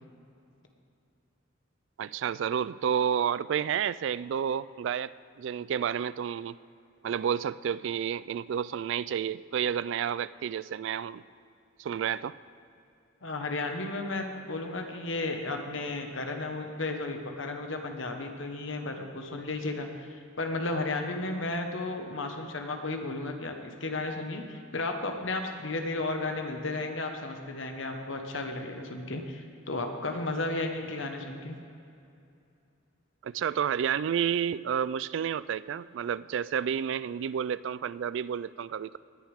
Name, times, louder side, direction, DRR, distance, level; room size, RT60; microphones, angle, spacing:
voice 1, 2.0-5.1 5.4-6.6 7.0-11.2 11.8-12.4 33.2-39.0, right 8 dB, 65° right, 18 dB, 0.3 m, -30 dB
voice 2, 13.2-31.6, left 2 dB, 75° left, 4 dB, 1.3 m, -34 dB
18.5 x 10.5 x 3.6 m, 2.6 s
head